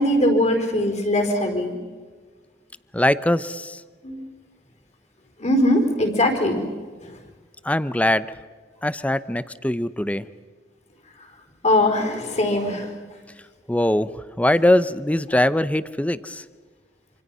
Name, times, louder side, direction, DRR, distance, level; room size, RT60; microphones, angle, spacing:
voice 1, 0.0-1.7 4.0-4.2 5.4-6.6 11.6-12.9, left 1 dB, 40° left, 4 dB, 4.7 m, -20 dB
voice 2, 2.9-3.8 7.6-8.3 8.8-10.3 13.7-16.4, left 1 dB, 10° left, 15 dB, 0.7 m, -21 dB
27.0 x 26.5 x 5.6 m, 1.5 s
head